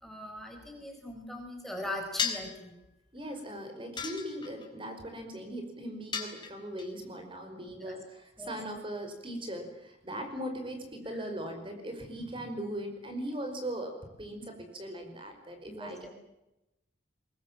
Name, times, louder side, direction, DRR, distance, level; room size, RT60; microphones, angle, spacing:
voice 1, 0.0-2.7 7.8-7.9 8.4-8.6 11.1-11.2 15.7-16.1, left 1 dB, ahead, 2 dB, 4.8 m, -40 dB
sound 1, 2.2-2.6 4.0-4.7 6.1-6.9, left 6 dB, 25° left, 4.2 m, -34 dB
voice 2, 3.1-16.1, right 1 dB, 25° right, 5 dB, 5.2 m, -39 dB
23.0 x 22.5 x 9.0 m, 0.92 s
head